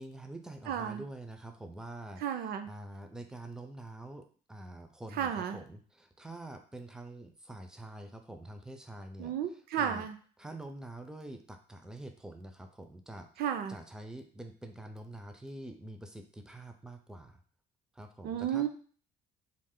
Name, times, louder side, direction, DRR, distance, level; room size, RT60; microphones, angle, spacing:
voice 1, 0.0-2.2 2.6-9.3 9.8-10.1 10.4-13.3 13.7-17.4 18.0-18.7, right 1 dB, 5° right, 6 dB, 0.4 m, -46 dB
voice 2, 0.7-1.0 2.2-2.7 5.1-5.6 9.2-10.2 13.4-13.8 18.2-18.7, right 9 dB, 65° right, 8 dB, 0.5 m, -33 dB
3.1 x 2.0 x 3.6 m, 0.43 s
cardioid pair, 110°, 17 cm